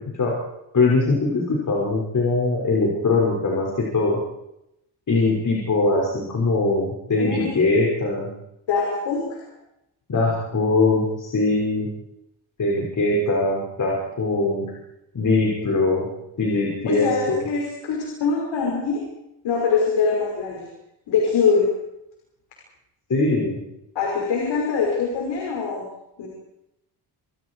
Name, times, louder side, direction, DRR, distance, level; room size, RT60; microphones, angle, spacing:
voice 1, 0.7-4.2 5.1-8.3 10.1-11.9 12.6-14.7 15.1-16.1 16.4-17.4 23.1-23.6, left 3 dB, 45° left, -3 dB, 6.2 m, -21 dB
voice 2, 7.2-7.5 8.7-9.4 16.9-19.0 19.4-20.7 21.1-21.7 23.9-25.8 26.2-26.3, left 5 dB, 85° left, -1 dB, 5.9 m, -23 dB
28.0 x 25.5 x 4.9 m, 0.85 s
cardioid pair, 90°, 43 cm